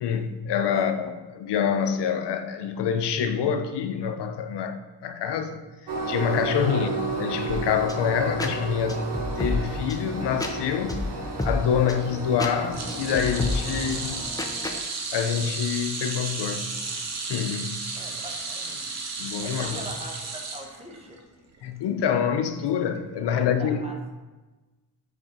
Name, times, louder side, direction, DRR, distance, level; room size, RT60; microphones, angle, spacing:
voice 1, 0.0-9.0 9.4-11.0 11.4-14.2 15.1-16.8 17.3-17.9 19.2-19.8 21.6-23.8, left 7 dB, 80° left, 8 dB, 0.7 m, -26 dB
Train, 5.9-14.3, right 4 dB, 70° right, 1.0 m, -33 dB
sound 1, 7.5-14.8, left 2 dB, 10° left, 0.5 m, -32 dB
sound 2, 12.7-21.2 21.5-21.8 23.0-23.1, right 3 dB, 40° right, 0.9 m, -33 dB
voice 2, 17.9-18.9 19.4-21.2 23.3-23.9, right 1 dB, 15° right, 1 dB, 0.9 m, -41 dB
5.0 x 4.3 x 5.0 m, 1.2 s
cardioid pair, 115°, 41 cm